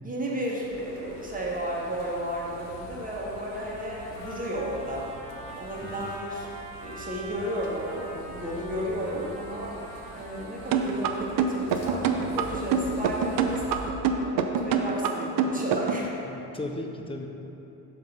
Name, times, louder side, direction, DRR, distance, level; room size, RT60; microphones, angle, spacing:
voice 1, 0.0-5.1 5.6-6.5 6.8-9.8 10.1-16.1, right 1 dB, 15° right, -4 dB, 1.5 m, -33 dB
sound 1, 0.6-13.9, left 1 dB, 55° left, 1.2 m, -45 dB
Trumpet, 3.0-11.4, right 1 dB, 90° right, 1.5 m, -44 dB
voice 2, 5.8-6.1 16.2-17.3, left 2 dB, 10° left, 2 dB, 0.6 m, -36 dB
sound 2, 10.7-16.1, right 7 dB, 45° right, 0.5 m, -25 dB
5.7 x 3.6 x 5.1 m, 2.9 s
hypercardioid pair, 55°, 48 cm